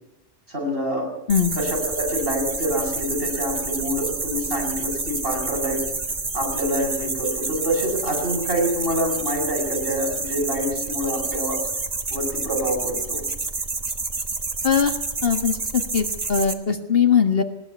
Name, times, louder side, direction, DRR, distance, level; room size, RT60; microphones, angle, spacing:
voice 1, 0.5-1.1 1.6-5.8 6.3-11.6 12.1-13.2, equal, 55° right, -1 dB, 7.5 m, -26 dB
sound 1, 1.3-16.5, right 3 dB, 35° right, 1.5 m, -29 dB
voice 2, 15.2-17.4, left 7 dB, 55° left, 6 dB, 1.8 m, -20 dB
20.0 x 19.0 x 8.3 m, 0.88 s
omnidirectional pair, 1.2 m